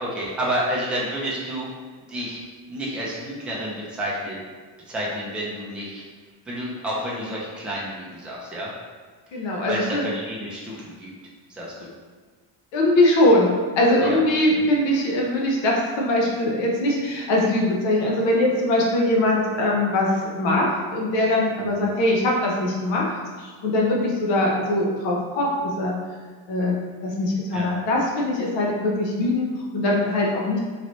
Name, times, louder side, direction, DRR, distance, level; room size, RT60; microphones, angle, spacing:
voice 1, 0.0-1.7 2.1-2.4 2.7-4.4 4.9-6.0 6.5-8.7 9.7-11.1 11.5-11.9 14.0-14.2 21.6-21.8 27.5-27.7, equal, ahead, -5 dB, 0.3 m, -30 dB
voice 2, 9.3-10.1 12.7-23.0 23.4-25.5 25.8-26.0 26.5-26.8 27.0-30.6, left 1 dB, 75° left, -2 dB, 0.8 m, -21 dB
3.1 x 2.6 x 3.0 m, 1.5 s
cardioid pair, 160°, 45 cm